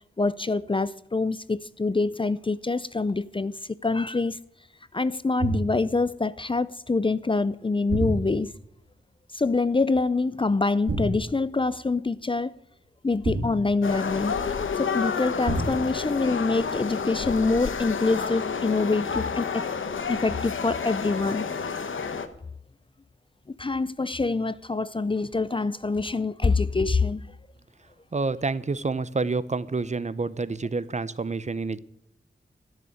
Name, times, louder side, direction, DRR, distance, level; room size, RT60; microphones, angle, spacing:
voice 1, 0.2-3.5 3.8-4.4 4.9-8.5 9.3-12.5 13.0-14.5 14.8-19.7 20.1-21.5 23.5-27.3, left 3 dB, 25° left, 0.5 m, -25 dB
sound 1, 5.4-5.9 7.9-8.7 10.9-11.4 13.2-14.1 15.4-16.0, right 2 dB, 75° right, 2.5 m, -29 dB
sound 2, 13.8-22.3, left 5 dB, 85° left, 1.1 m, -30 dB
voice 2, 28.1-31.8, right 3 dB, 35° right, 0.7 m, -28 dB
13.5 x 6.9 x 8.9 m
wide cardioid pair, 80°, 20 cm